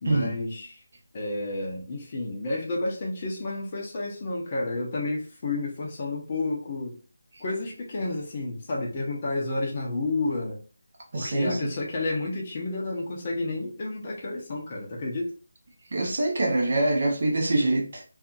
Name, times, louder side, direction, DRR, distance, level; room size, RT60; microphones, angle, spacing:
voice 1, 0.0-0.8 1.1-7.0 7.4-10.6 11.2-15.3, left 2 dB, 30° left, 0.7 m, -31 dB
voice 2, 11.1-11.8 15.9-18.0, right 2 dB, 45° right, 0.7 m, -25 dB
2.6 x 2.5 x 2.4 m
figure-of-eight pair, 155°, 0 cm